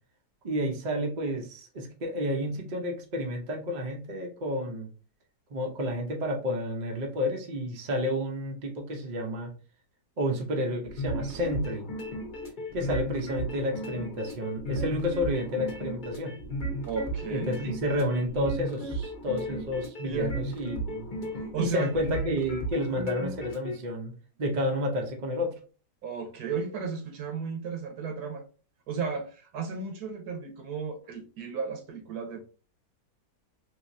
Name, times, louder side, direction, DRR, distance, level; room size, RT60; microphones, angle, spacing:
voice 1, 0.4-4.9 5.5-9.5 10.2-11.8 12.7-16.4 17.3-21.1 21.6-24.1 24.4-25.6, equal, 40° right, 0.6 m, -30 dB
sound 1, 10.8-23.7, right 1 dB, 40° left, 0.8 m, -35 dB
voice 2, 16.8-17.5 20.0-20.3 21.3-21.9 26.0-28.4 28.9-32.4, right 5 dB, 70° right, 1.3 m, -34 dB
3.4 x 2.8 x 2.6 m
omnidirectional pair, 1.7 m